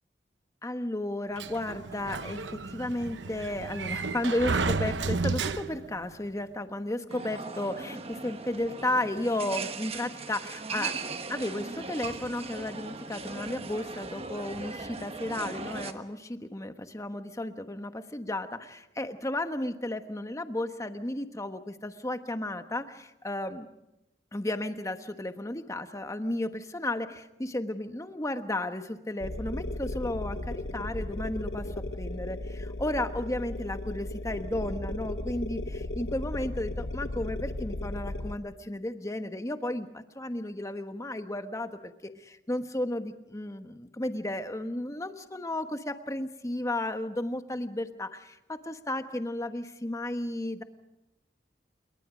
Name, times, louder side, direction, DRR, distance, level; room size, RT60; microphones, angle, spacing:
voice 1, 0.6-10.9 11.3-23.7 24.3-31.7 32.0-50.6, left 1 dB, 20° left, 8 dB, 1.2 m, -33 dB
Sliding door, 1.4-6.0, right 4 dB, 85° right, 0.9 m, -32 dB
sound 1, 7.1-15.9, right 4 dB, 35° right, 1.2 m, -38 dB
sound 2, 29.2-38.4, left 2 dB, 70° left, 1.0 m, -35 dB
27.5 x 22.5 x 5.1 m, 0.92 s
head